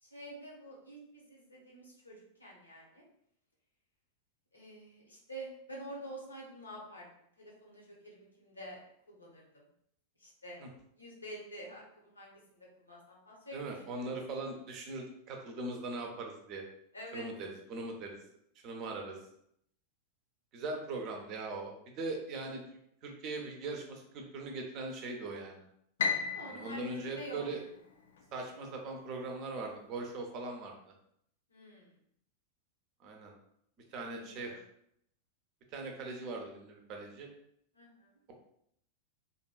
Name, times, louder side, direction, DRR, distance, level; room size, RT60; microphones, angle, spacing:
voice 1, 0.0-3.0 4.5-7.1 7.4-8.8 9.1-9.6 10.2-10.6 11.0-14.0 16.9-17.3 26.2-27.4 31.5-31.9 33.9-34.5 37.7-38.1, right 1 dB, 80° left, -3 dB, 0.8 m, -48 dB
voice 2, 13.5-16.6 17.1-18.2 18.6-19.2 20.5-22.6 23.0-25.7 26.5-27.6 28.3-30.8 33.0-33.3 33.9-34.6 35.7-37.3, right 2 dB, 40° right, 2 dB, 0.5 m, -40 dB
Piano, 26.0-28.3, left 5 dB, 65° left, 0.3 m, -36 dB
2.5 x 2.2 x 2.3 m, 0.72 s
figure-of-eight pair, 90°, 0 cm